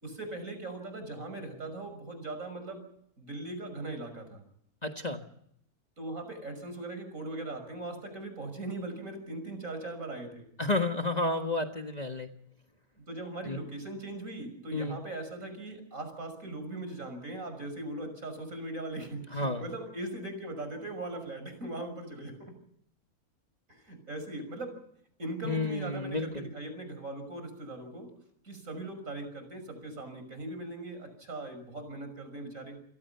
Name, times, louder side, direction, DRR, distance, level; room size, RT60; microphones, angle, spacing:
voice 1, 0.0-2.8 3.2-4.4 6.0-10.5 13.0-22.5 23.7-24.8 25.2-28.1 28.4-32.8, right 2 dB, 60° right, 7 dB, 6.4 m, -40 dB
voice 2, 4.8-5.2 10.6-12.3 13.5-13.6 14.7-15.0 19.3-19.6 25.4-26.5, left 2 dB, 30° left, 4 dB, 1.5 m, -31 dB
29.5 x 17.5 x 5.7 m, 0.71 s
omnidirectional pair, 1.6 m